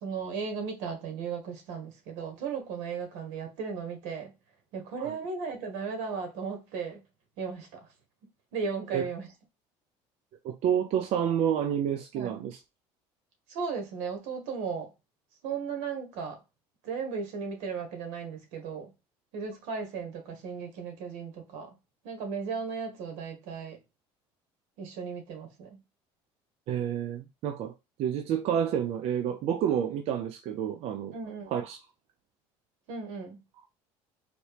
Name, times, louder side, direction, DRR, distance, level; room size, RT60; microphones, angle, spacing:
voice 1, 0.0-4.3 4.7-7.0 7.4-7.9 8.5-9.3 12.1-12.4 13.5-14.9 15.4-16.4 16.8-18.9 19.3-21.7 22.0-23.8 24.8-25.8 31.1-31.5 32.9-33.4, right 5 dB, 85° right, 1.6 m, -36 dB
voice 2, 10.4-12.6 26.7-27.7 28.0-31.1 31.5-31.8, right 9 dB, 60° right, 0.6 m, -29 dB
4.3 x 2.9 x 3.3 m
cardioid pair, 125°, 12 cm